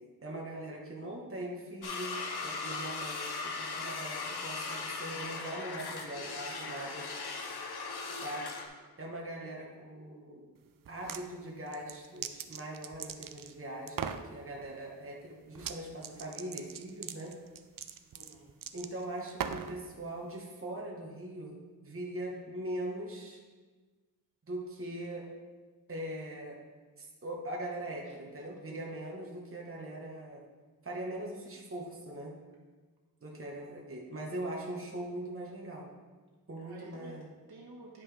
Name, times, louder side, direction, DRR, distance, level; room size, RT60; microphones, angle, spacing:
voice 1, 0.2-7.1 8.2-8.4 9.0-10.5 10.9-17.3 18.7-21.5 21.8-23.4 24.5-25.3 25.9-26.6 27.0-30.4 30.8-32.3 33.2-35.9 36.5-37.3, right 1 dB, 35° right, -2 dB, 1.2 m, -41 dB
sound 1, 1.8-8.7, left 4 dB, 90° left, 0.8 m, -38 dB
sound 2, 10.8-11.2 11.7-13.5 13.9-14.3 15.5-15.8 16.0-19.8, right 8 dB, 60° right, 0.5 m, -40 dB
voice 2, 18.1-18.5 28.1-28.2 36.6-38.0, right 2 dB, 80° right, -3 dB, 1.4 m, -52 dB
9.8 x 5.4 x 3.4 m, 1.4 s
wide cardioid pair, 90°, 37 cm